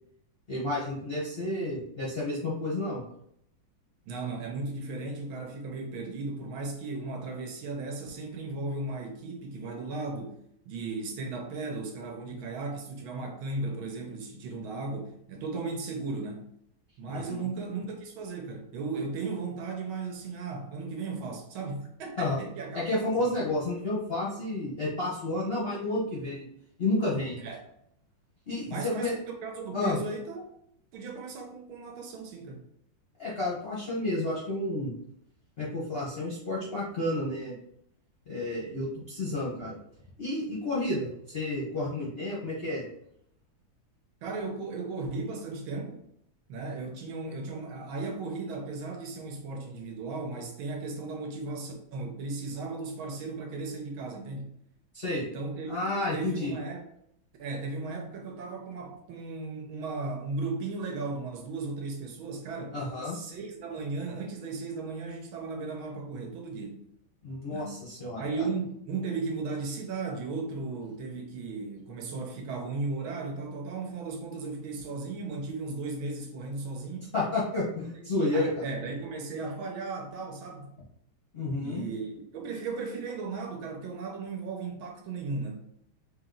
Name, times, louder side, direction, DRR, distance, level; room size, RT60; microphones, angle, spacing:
voice 1, 0.5-3.0 17.1-17.5 22.2-22.4 22.7-26.5 26.8-27.4 28.5-29.1 29.7-30.0 33.2-34.9 35.6-37.5 38.3-39.8 40.2-42.8 54.9-55.2 55.7-56.5 62.7-63.2 67.2-68.5 77.1-78.7 81.3-81.8, left 2 dB, 45° left, -7 dB, 0.8 m, -31 dB
voice 2, 4.1-10.4 10.6-16.5 17.0-22.9 23.2-23.4 27.4-27.6 28.7-29.1 29.4-30.4 30.9-32.6 44.2-46.0 46.5-54.5 55.2-56.8 57.4-62.8 63.0-66.9 67.5-67.8 68.2-77.1 78.0-78.1 78.3-80.7 81.6-85.6, right 3 dB, 75° right, 2 dB, 1.6 m, -36 dB
3.6 x 3.0 x 3.8 m, 0.71 s
omnidirectional pair, 2.3 m